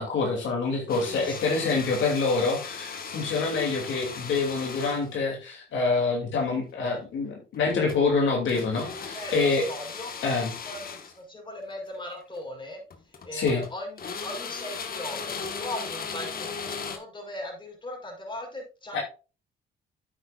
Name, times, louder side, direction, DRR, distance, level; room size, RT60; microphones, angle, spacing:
voice 1, 0.0-9.6 10.2-10.6 13.3-13.6 18.9-19.0, left 4 dB, 70° left, -1 dB, 2.8 m, -26 dB
sound 1, 0.9-5.2 7.5-8.1 8.5-11.2 12.2-12.4 12.9-13.7 14.0-17.0, left 5 dB, 45° left, 1.5 m, -37 dB
voice 2, 1.2-1.5 9.1-10.1 10.6-12.8 13.2-19.0, left 1 dB, 25° left, 0 dB, 5.0 m, -39 dB
9.1 x 8.9 x 2.5 m, 0.33 s
cardioid pair, 90°, 20 cm